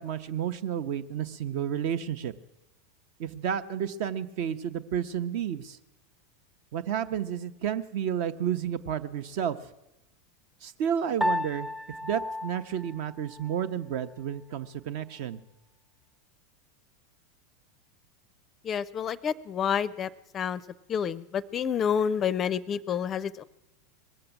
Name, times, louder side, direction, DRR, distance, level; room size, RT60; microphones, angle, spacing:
voice 1, 0.0-2.3 3.2-5.8 6.7-9.6 10.6-11.7 12.0-15.4, right 9 dB, 50° right, 12 dB, 0.7 m, -31 dB
Piano, 11.2-13.7, left 1 dB, 15° right, 0.6 m, -33 dB
voice 2, 18.6-20.6 20.9-23.4, left 7 dB, 30° left, 17 dB, 0.4 m, -29 dB
21.0 x 7.7 x 8.5 m, 0.93 s
figure-of-eight pair, 85°, 0 cm